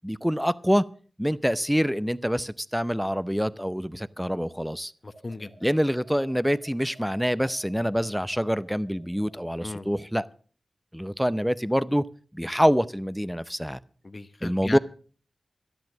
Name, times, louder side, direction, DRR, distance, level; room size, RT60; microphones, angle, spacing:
voice 1, 0.0-0.9 1.2-4.9 5.6-10.2 10.9-12.1 12.3-13.8 14.4-14.8, equal, ahead, 0.6 m, -26 dB
voice 2, 5.0-5.7 9.6-9.9 14.0-14.8, left 2 dB, 40° left, 1.0 m, -37 dB
sound 1, 5.1-9.9, right 2 dB, 60° right, 2.1 m, -54 dB
12.5 x 10.5 x 6.2 m
wide cardioid pair, 65°, 0 cm